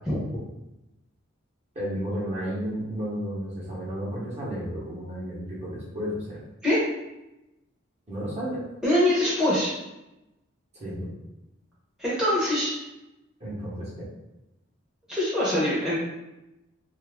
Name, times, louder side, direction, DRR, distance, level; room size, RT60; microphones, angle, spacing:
voice 1, 1.7-6.4 8.1-8.6 10.8-11.1 13.4-13.9, equal, 30° right, -7 dB, 0.9 m, -32 dB
voice 2, 8.8-9.7 12.0-12.7 15.1-16.0, left 1 dB, 5° right, -9 dB, 0.8 m, -23 dB
2.7 x 2.4 x 3.4 m, 0.94 s
head